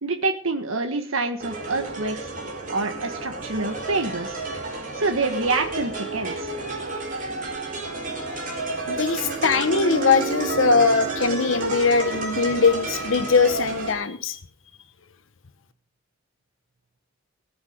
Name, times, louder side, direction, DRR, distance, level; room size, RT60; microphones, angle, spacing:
voice 1, 0.0-2.2 2.7-4.4 5.0-6.5, right 3 dB, 85° right, 5 dB, 1.7 m, -26 dB
sound 1, 1.4-13.9, right 2 dB, 45° right, 4.0 m, -30 dB
voice 2, 8.9-14.4, left 4 dB, 70° left, 9 dB, 1.0 m, -21 dB
19.0 x 8.1 x 5.2 m, 0.40 s
head